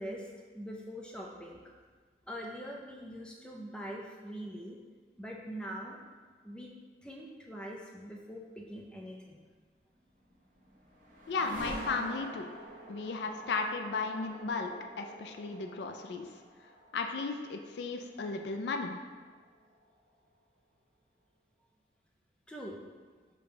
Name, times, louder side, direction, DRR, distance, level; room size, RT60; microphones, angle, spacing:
voice 1, 0.0-1.6 2.2-4.8 5.2-6.0 6.4-6.7 7.0-9.4 22.5-22.8, equal, 5° left, -1 dB, 0.4 m, -43 dB
sound 1, 10.0-20.1, right 1 dB, 45° right, 0.9 m, -47 dB
voice 2, 11.3-12.5 12.9-16.3 16.9-19.0, left 4 dB, 70° left, 4 dB, 0.4 m, -35 dB
4.9 x 2.2 x 4.8 m, 1.5 s
head